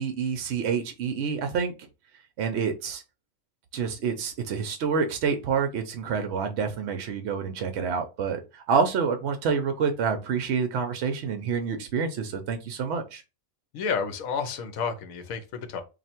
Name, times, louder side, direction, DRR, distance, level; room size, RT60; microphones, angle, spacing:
voice 1, 0.0-1.7 2.4-3.0 3.7-13.2, right 6 dB, 65° right, 0.7 m, -28 dB
voice 2, 13.7-15.8, left 6 dB, 75° left, 1.1 m, -30 dB
3.2 x 2.6 x 4.2 m
omnidirectional pair, 1.5 m